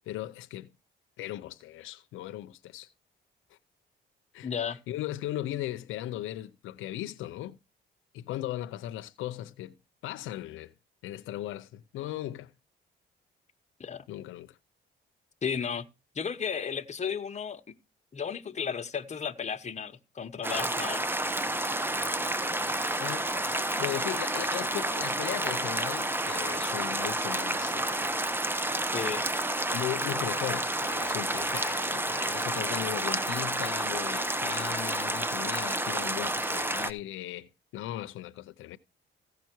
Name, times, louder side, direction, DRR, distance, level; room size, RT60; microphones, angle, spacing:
voice 1, 0.1-0.7 1.2-2.9 4.3-4.5 4.9-7.6 8.1-9.8 10.0-10.7 11.0-12.5 14.1-14.6 23.0-28.1 29.7-38.8, left 14 dB, 90° left, 0.6 m, -37 dB
voice 2, 4.4-4.8 13.8-14.1 15.4-15.9 16.1-17.8 18.1-21.0 28.9-29.3, left 7 dB, 35° left, 1.2 m, -34 dB
sound 1, 20.4-36.9, right 1 dB, 10° right, 0.8 m, -30 dB
15.5 x 6.0 x 4.5 m
cardioid pair, 90°, 20 cm